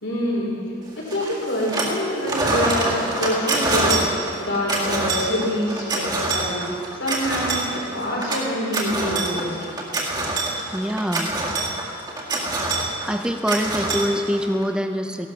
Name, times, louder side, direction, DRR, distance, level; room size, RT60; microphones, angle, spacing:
voice 1, 0.0-0.6 1.0-4.1 4.4-6.7 6.9-9.6, left 1 dB, 70° left, -4 dB, 4.5 m, -25 dB
sound 1, 1.1-2.0 2.2-14.6, right 2 dB, 20° right, 2.0 m, -25 dB
voice 2, 10.7-11.3 12.7-15.3, equal, 5° right, 6 dB, 0.6 m, -24 dB
16.0 x 12.0 x 6.1 m, 2.6 s
head